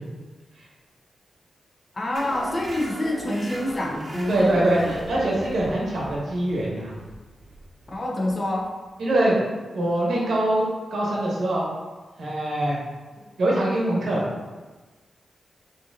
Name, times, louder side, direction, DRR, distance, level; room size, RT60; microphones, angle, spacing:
voice 1, 1.9-4.9 7.9-8.7, left 1 dB, 35° left, -1 dB, 0.8 m, -27 dB
sound 1, 2.1-9.3, right 1 dB, 40° right, 0.8 m, -40 dB
voice 2, 4.3-6.9 9.0-9.3 9.7-11.7 12.2-12.8 13.4-14.3, right 1 dB, 80° right, -4 dB, 1.1 m, -23 dB
5.3 x 2.9 x 2.5 m, 1.3 s
wide cardioid pair, 110°, 0 cm